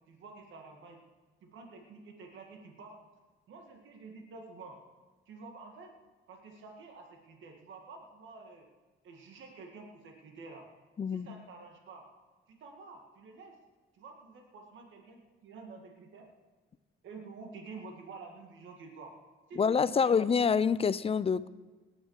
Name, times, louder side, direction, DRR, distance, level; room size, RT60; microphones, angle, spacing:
voice 1, 0.1-1.0 1.4-3.0 3.5-4.8 5.3-5.9 6.3-8.7 9.0-10.7 11.1-12.1 12.5-13.6 13.9-16.3 17.0-19.2 19.5-20.2, right 4 dB, 75° right, 2 dB, 1.9 m, -49 dB
voice 2, 11.0-11.3 19.6-21.5, left 6 dB, 30° left, 17 dB, 0.5 m, -27 dB
18.5 x 10.0 x 4.8 m, 1.3 s
cardioid pair, 90°, 20 cm